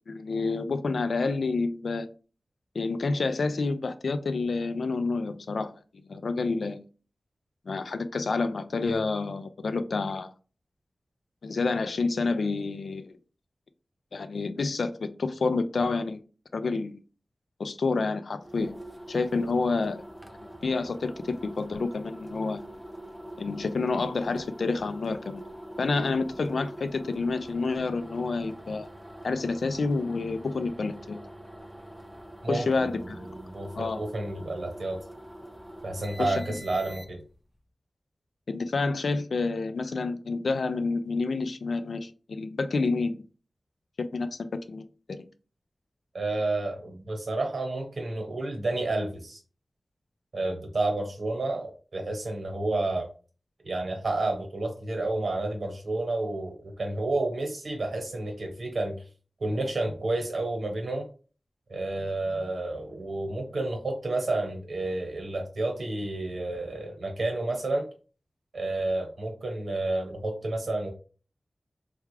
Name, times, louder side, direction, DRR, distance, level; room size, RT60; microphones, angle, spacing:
voice 1, 0.1-2.1 2.7-5.7 6.1-6.8 7.7-10.3 11.4-13.1 14.1-16.2 16.5-16.9 17.6-18.7 19.1-20.0 20.6-21.1 21.6-22.6 23.4-25.4 25.8-28.9 29.2-31.2 32.5-33.3 33.8-34.0 36.2-36.6 38.5-43.2 44.0-45.2, left 3 dB, 85° left, 10 dB, 0.4 m, -29 dB
sound 1, 18.4-37.4, right 1 dB, 5° right, 0.5 m, -44 dB
voice 2, 32.4-33.0 33.3-35.0 35.8-37.2 46.1-49.4 50.3-53.1 53.6-59.0 59.4-61.0 61.7-67.9 68.5-70.9, right 2 dB, 75° right, 3 dB, 1.1 m, -30 dB
3.4 x 2.4 x 3.2 m, 0.37 s
cardioid pair, 45°, 0 cm